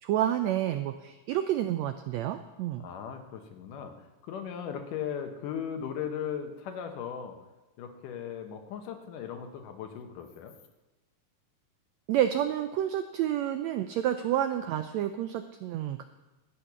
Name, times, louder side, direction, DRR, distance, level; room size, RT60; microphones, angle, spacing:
voice 1, 0.0-2.9 12.1-16.0, right 11 dB, 90° right, 9 dB, 1.5 m, -29 dB
voice 2, 2.8-7.4 7.8-10.5, left 8 dB, 80° left, 6 dB, 2.7 m, -38 dB
13.0 x 8.7 x 6.0 m, 1.1 s
omnidirectional pair, 3.7 m